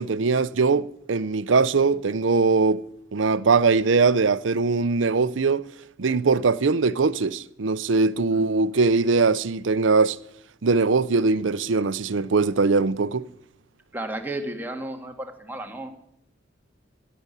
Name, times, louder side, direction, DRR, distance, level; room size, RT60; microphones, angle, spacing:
voice 1, 0.0-2.8 3.1-5.7 6.0-10.2 10.6-13.2, right 4 dB, 80° right, 0.6 m, -21 dB
voice 2, 13.9-16.0, right 1 dB, 10° right, 1.8 m, -33 dB
17.5 x 6.9 x 9.8 m
head